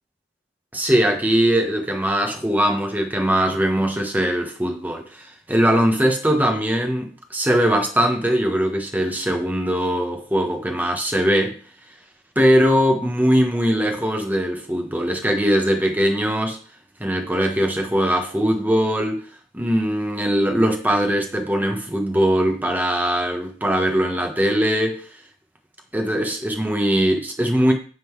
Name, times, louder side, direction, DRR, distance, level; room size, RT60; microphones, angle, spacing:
voice 1, 0.7-11.6 12.3-16.6 17.0-19.2 19.5-25.0 25.9-27.7, equal, 10° right, 1.2 m, -21 dB
9.0 x 3.9 x 4.6 m
head